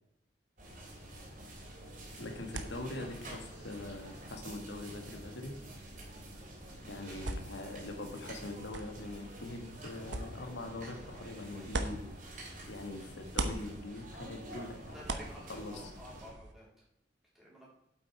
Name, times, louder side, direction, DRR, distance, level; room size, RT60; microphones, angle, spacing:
sound 1, 0.6-16.3, right 1 dB, 45° right, 3.4 m, -48 dB
sound 2, 1.6-12.8 13.1-16.5, right 2 dB, 85° right, 1.0 m, -44 dB
voice 1, 2.2-5.5 6.9-12.1 12.7-15.9, left 2 dB, 85° left, 4 dB, 1.9 m, -43 dB
voice 2, 14.9-16.7 17.3-17.7, equal, ahead, -6 dB, 3.7 m, -51 dB
8.1 x 8.1 x 4.9 m, 0.82 s
head